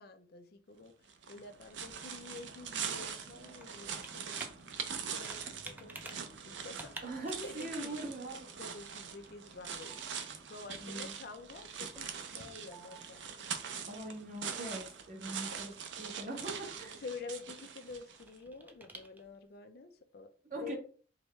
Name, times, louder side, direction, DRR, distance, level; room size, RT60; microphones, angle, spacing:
voice 1, 0.0-4.6 5.1-7.0 7.4-8.0 8.6-13.3 15.3-15.6 17.0-20.3 20.6-20.8, left 4 dB, 55° left, 0.4 m, -49 dB
sound 1, 1.1-18.3, right 7 dB, 75° right, 0.5 m, -43 dB
Computer keyboard, 1.3-19.6, right 2 dB, 10° right, 0.4 m, -55 dB
voice 2, 7.0-8.4 10.8-11.1 13.9-15.7 16.0-17.0 20.5-20.8, right 2 dB, 45° right, 1.1 m, -42 dB
4.7 x 2.2 x 3.1 m
head